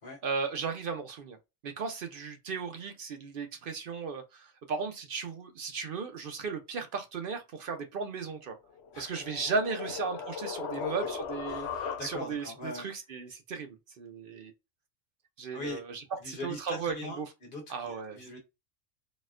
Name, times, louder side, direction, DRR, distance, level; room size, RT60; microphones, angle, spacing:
voice 1, 0.2-1.4 1.6-8.6 9.0-11.7 12.0-14.5 15.4-17.3 17.7-18.2, right 5 dB, 60° right, 0.6 m, -36 dB
Ambient Noise, 8.7-12.5, left 6 dB, 65° left, 0.8 m, -38 dB
voice 2, 11.5-12.9 15.5-15.8 16.2-18.4, left 2 dB, 45° left, 1.2 m, -42 dB
4.1 x 2.1 x 2.4 m
omnidirectional pair, 1.3 m